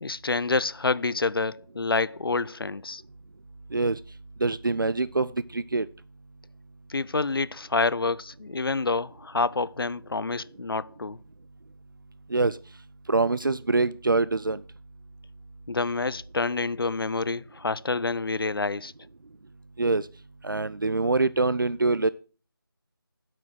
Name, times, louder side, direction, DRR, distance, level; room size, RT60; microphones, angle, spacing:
voice 1, 0.0-3.0 6.9-11.2 15.7-18.9, left 3 dB, 70° left, 0.5 m, -28 dB
voice 2, 4.4-5.9 12.3-12.6 13.1-14.6 19.8-20.1 20.4-22.1, right 3 dB, 60° right, 0.5 m, -24 dB
8.8 x 6.2 x 6.2 m
figure-of-eight pair, 180°, 12 cm